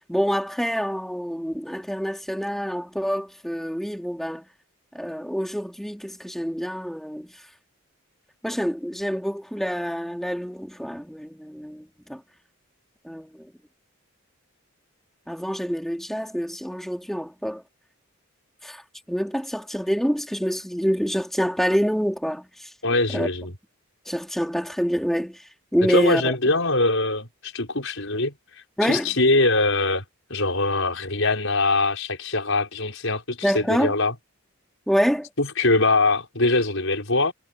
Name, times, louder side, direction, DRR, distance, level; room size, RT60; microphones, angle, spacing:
voice 1, 0.1-4.4 4.9-7.3 8.4-12.2 13.0-13.5 15.3-17.6 18.6-18.8 19.1-22.7 23.1-23.3 24.1-26.3 28.8-29.1 33.4-34.0 34.9-35.3, equal, ahead, 3.8 m, -26 dB
voice 2, 22.8-23.5 25.9-28.3 28.9-30.0 30.3-34.1 35.4-37.3, left 2 dB, 65° left, 6.1 m, -22 dB
head